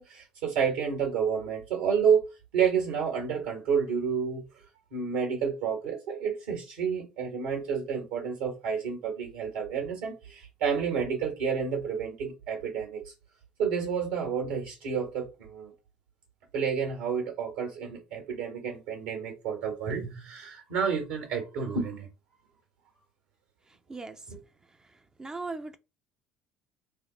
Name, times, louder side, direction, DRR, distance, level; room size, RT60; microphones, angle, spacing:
voice 1, 0.0-2.2 2.5-4.4 4.9-13.0 13.6-15.7 16.5-22.1, right 6 dB, 75° right, 1.5 m, -30 dB
voice 2, 23.7-24.3 24.7-25.8, right 3 dB, 20° right, 0.4 m, -40 dB
3.1 x 2.1 x 3.8 m
hypercardioid pair, 60°, 3 cm